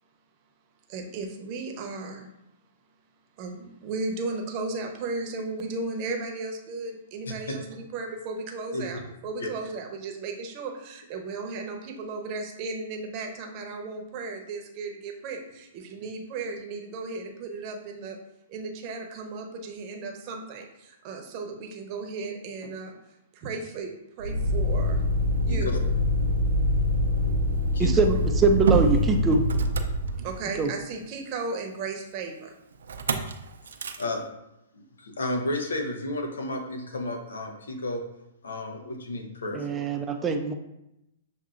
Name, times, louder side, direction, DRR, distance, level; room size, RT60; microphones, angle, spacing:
voice 1, 0.9-2.3 3.4-18.2 18.5-22.9 23.3-23.9 24.2-25.0 25.4-25.8 30.2-32.5, right 3 dB, 40° right, 2 dB, 0.8 m, -35 dB
Motor vehicle (road), 24.2-30.6 32.9-33.3 33.7-34.0, equal, 80° right, 0.5 m, -25 dB
voice 2, 25.5-25.8 27.7-28.1 34.0-34.2 34.7-38.0 38.4-40.0, left 1 dB, 85° left, 4 dB, 0.8 m, -32 dB
voice 3, 27.8-29.4 30.6-30.7 39.5-40.5, right 4 dB, 20° right, 5 dB, 0.4 m, -23 dB
7.0 x 2.7 x 2.5 m, 0.87 s
hypercardioid pair, 130°, 0 cm